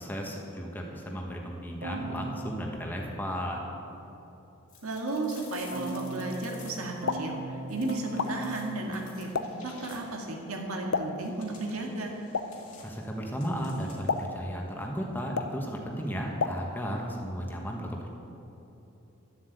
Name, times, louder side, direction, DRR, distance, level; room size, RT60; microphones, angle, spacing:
voice 1, 0.0-3.7 12.8-18.0, equal, 10° left, 0 dB, 1.4 m, -34 dB
Keyboard (musical), 1.8-4.1 5.7-10.0, right 2 dB, 40° right, 0.9 m, -40 dB
sound 1, 4.7-7.1 7.7-10.3 11.2-14.2, left 4 dB, 35° left, 2.3 m, -53 dB
voice 2, 4.8-9.3 9.6-12.2, right 2 dB, 85° right, 1 dB, 1.8 m, -34 dB
Explosion, 6.8-17.1, left 4 dB, 75° left, 0.7 m, -37 dB
12.0 x 7.8 x 8.0 m, 3.0 s
head